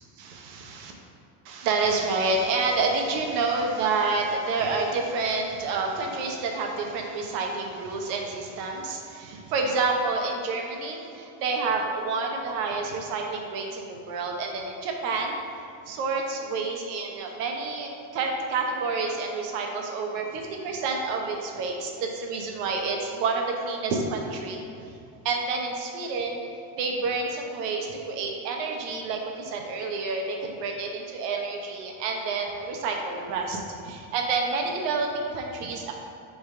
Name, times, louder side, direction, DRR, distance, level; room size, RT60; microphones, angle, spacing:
voice 1, 0.2-0.9 1.4-15.4 15.9-24.9 25.2-26.5 26.8-35.9, right 3 dB, 80° right, 1 dB, 1.2 m, -29 dB
8.1 x 3.9 x 3.8 m, 2.6 s
supercardioid pair, 95°, 47 cm